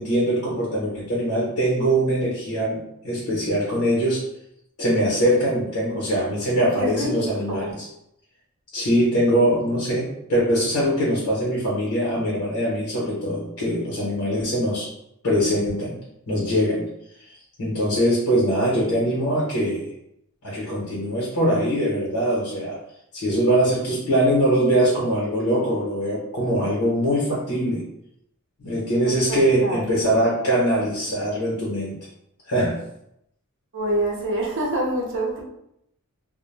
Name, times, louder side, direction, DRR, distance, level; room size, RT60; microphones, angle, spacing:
voice 1, 0.0-4.2 4.8-7.9 8.7-14.9 15.2-16.0 16.3-16.8 17.6-19.8 20.4-22.8 23.1-27.8 28.6-31.9 32.5-32.7, equal, 80° left, -7 dB, 0.9 m, -22 dB
voice 2, 6.8-7.7 29.0-30.1 33.7-35.4, right 1 dB, 60° right, -1 dB, 0.6 m, -27 dB
2.2 x 2.1 x 3.2 m, 0.78 s
head